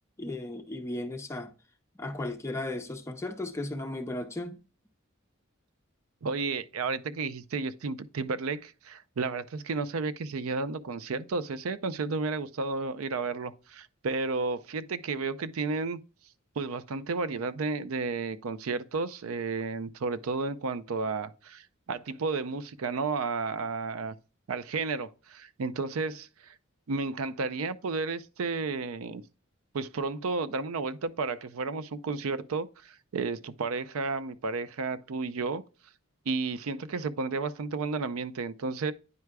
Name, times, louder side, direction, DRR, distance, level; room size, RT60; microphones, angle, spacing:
voice 1, 0.2-1.5 2.0-4.6, left 2 dB, 15° left, 0.5 m, -35 dB
voice 2, 6.2-16.0 16.6-24.2 24.5-26.5 26.9-29.2 29.7-35.6 36.3-38.9, right 4 dB, 90° right, 0.5 m, -32 dB
9.6 x 4.7 x 2.2 m
head